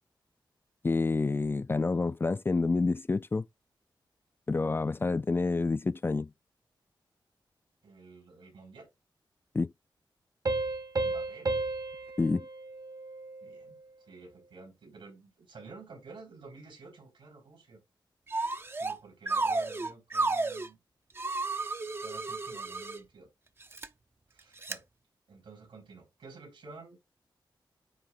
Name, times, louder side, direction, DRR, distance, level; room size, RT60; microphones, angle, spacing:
voice 1, 0.8-3.4 4.5-6.3 9.5-9.7 12.2-12.5, left 3 dB, 25° left, 0.4 m, -28 dB
voice 2, 7.8-8.9 11.0-11.6 13.4-13.8 14.1-17.8 18.7-20.8 22.0-23.3 24.3-24.8 25.3-27.0, right 3 dB, 80° right, 4.1 m, -51 dB
Piano, 10.5-13.7, right 3 dB, 45° right, 1.0 m, -33 dB
sound 1, 18.3-19.0 19.3-20.7 21.2-23.0 23.6-23.9 24.6-24.8, right 3 dB, 30° right, 0.6 m, -32 dB
9.3 x 3.2 x 4.2 m
wide cardioid pair, 110°, 9 cm